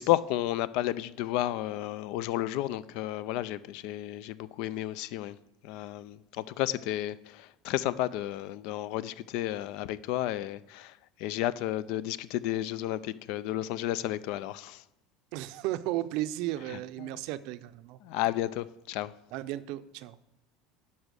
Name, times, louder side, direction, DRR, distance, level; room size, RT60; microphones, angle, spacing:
voice 1, 0.0-5.4 5.6-10.9 11.2-14.8 17.0-17.1 18.0-19.1, left 14 dB, 65° left, 0.4 m, -32 dB
voice 2, 15.3-18.0 19.3-20.2, right 15 dB, 65° right, 0.5 m, -34 dB
10.0 x 5.5 x 6.3 m
supercardioid pair, 140°, 0 cm